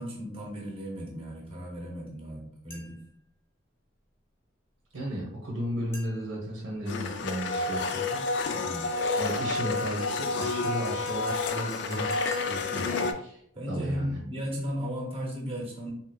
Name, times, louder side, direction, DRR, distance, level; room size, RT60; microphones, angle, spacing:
voice 1, 0.0-3.0 8.4-8.9 13.5-15.9, equal, 30° right, -2 dB, 0.8 m, -35 dB
sound 1, 2.7-3.1 5.9-6.4 8.9-12.7, left 1 dB, 10° left, 0.6 m, -50 dB
voice 2, 4.9-8.2 9.2-13.4 13.7-14.2, equal, 90° right, -4 dB, 1.0 m, -34 dB
Domestic sounds home sounds, 6.9-13.1, left 3 dB, 65° left, 0.3 m, -30 dB
3.7 x 2.9 x 2.3 m, 0.66 s
head